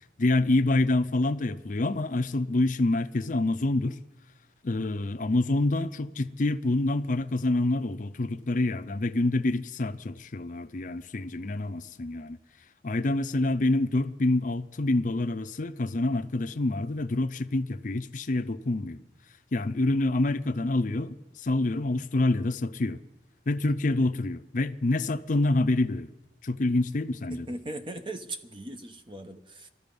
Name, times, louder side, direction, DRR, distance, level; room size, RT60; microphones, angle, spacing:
voice 1, 0.2-4.0 4.6-12.4 12.8-19.0 19.5-23.0 23.5-26.1 26.4-27.5, left 2 dB, 45° left, 0.6 m, -27 dB
voice 2, 27.3-29.7, right 2 dB, 30° right, 0.8 m, -39 dB
19.5 x 13.5 x 5.4 m
head